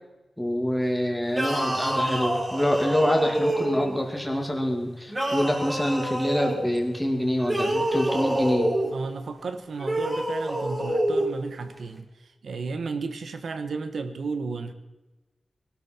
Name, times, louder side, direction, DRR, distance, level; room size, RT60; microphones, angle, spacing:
voice 1, 0.4-8.7, equal, 5° left, 1 dB, 2.3 m, -26 dB
sound 1, 1.3-4.0 5.1-6.6 7.4-8.9 9.8-11.3, right 1 dB, 15° right, 3.6 m, -27 dB
voice 2, 8.9-14.7, right 4 dB, 85° right, 9 dB, 1.3 m, -33 dB
20.5 x 12.5 x 4.5 m, 1.1 s
wide cardioid pair, 125°, 0 cm